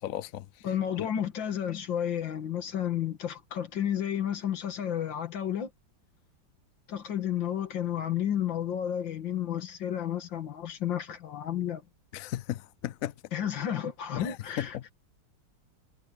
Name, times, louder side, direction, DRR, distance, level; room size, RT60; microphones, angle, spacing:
voice 1, 0.0-0.5 1.0-1.1 12.1-13.1 14.1-14.9, left 12 dB, 60° left, 0.9 m, -35 dB
voice 2, 0.6-5.7 6.9-11.8 13.3-14.9, left 10 dB, 85° left, 2.3 m, -31 dB
omnidirectional pair, 2.0 m